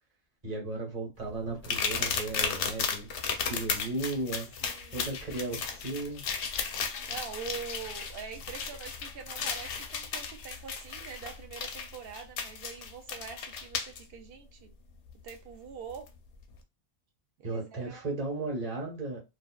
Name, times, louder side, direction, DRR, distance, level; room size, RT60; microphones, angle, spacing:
voice 1, 0.4-3.1 3.5-4.5 4.9-6.2 17.4-19.2, right 2 dB, 35° right, 1.1 m, -35 dB
sound 1, 1.6-14.0 15.3-15.4 15.9-16.1, left 6 dB, 85° left, 0.9 m, -35 dB
voice 2, 4.6-5.0 7.1-14.7 15.2-16.1 17.4-18.1, right 6 dB, 65° right, 0.7 m, -44 dB
2.5 x 2.3 x 2.2 m
omnidirectional pair, 1.1 m